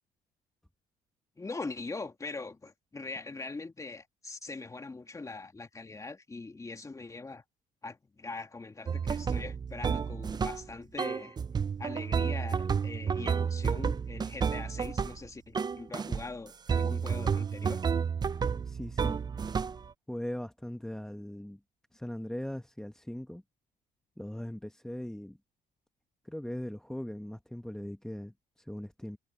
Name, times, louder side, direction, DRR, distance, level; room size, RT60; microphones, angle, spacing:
voice 1, 1.4-7.4 7.8-11.4 11.8-17.8, left 3 dB, 20° left, 2.4 m, -42 dB
sound 1, 8.9-10.7 11.0-15.3 15.5-16.3 16.7-19.9, right 6 dB, 25° right, 0.5 m, -31 dB
voice 2, 18.6-19.2 20.1-21.6 21.9-23.4 24.2-25.4 26.2-29.2, left 1 dB, 5° left, 1.0 m, -39 dB
cardioid pair, 110°, 17 cm